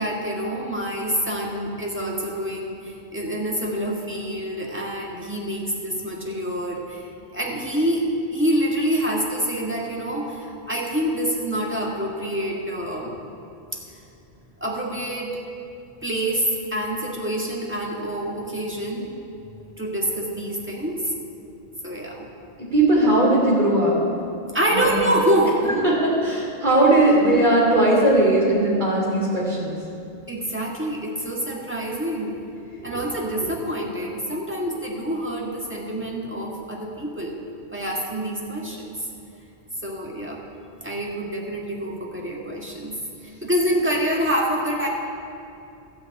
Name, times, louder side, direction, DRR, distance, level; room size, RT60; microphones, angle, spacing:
voice 1, 0.0-13.1 14.6-15.3 16.0-19.1 19.8-21.1 21.8-22.3 24.5-25.9 30.3-32.4 32.8-37.3 37.7-39.1 39.8-40.4 40.8-43.0 43.4-44.9, right 1 dB, 10° right, -2 dB, 1.7 m, -26 dB
voice 2, 22.6-24.0 24.7-25.1 25.7-29.7 32.9-33.0 33.4-33.5, right 1 dB, 40° right, -4 dB, 3.1 m, -19 dB
13.0 x 5.9 x 8.5 m, 2.6 s
omnidirectional pair, 1.2 m